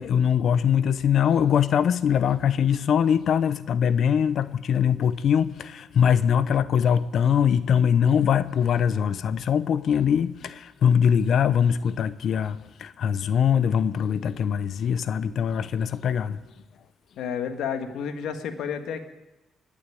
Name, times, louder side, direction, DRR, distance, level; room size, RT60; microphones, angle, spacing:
voice 1, 0.0-16.4, left 8 dB, 65° left, 0.8 m, -22 dB
voice 2, 17.2-19.0, left 7 dB, 80° left, 1.7 m, -30 dB
21.5 x 7.4 x 9.2 m
cardioid pair, 90°, 0 cm